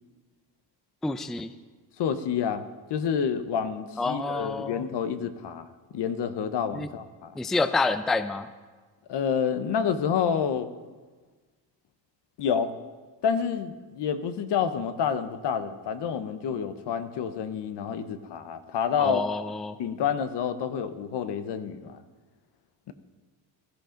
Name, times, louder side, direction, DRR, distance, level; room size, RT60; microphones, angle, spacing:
voice 1, 1.0-1.5 4.0-4.8 6.7-6.9 7.4-8.5 19.0-19.8, left 3 dB, ahead, 12 dB, 0.4 m, -28 dB
voice 2, 2.0-5.7 5.9-7.4 9.1-10.7 12.4-12.7 13.2-19.2 19.8-22.0 22.9-23.0, left 7 dB, 70° left, 11 dB, 1.0 m, -28 dB
16.5 x 13.0 x 3.8 m, 1.4 s
cardioid pair, 90°, 43 cm